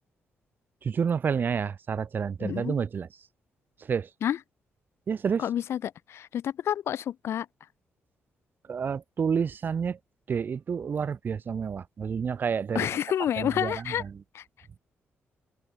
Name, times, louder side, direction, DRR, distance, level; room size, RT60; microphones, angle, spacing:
voice 1, 0.8-3.1 3.8-4.1 5.1-5.4 8.7-10.0 10.3-12.9 13.4-14.1, right 6 dB, 50° right, 2.2 m, -29 dB
voice 2, 2.4-2.8 4.2-4.4 5.4-7.5 12.7-14.0 14.3-14.4, left 10 dB, 70° left, 1.0 m, -29 dB
open air
cardioid pair, 100°, 4 cm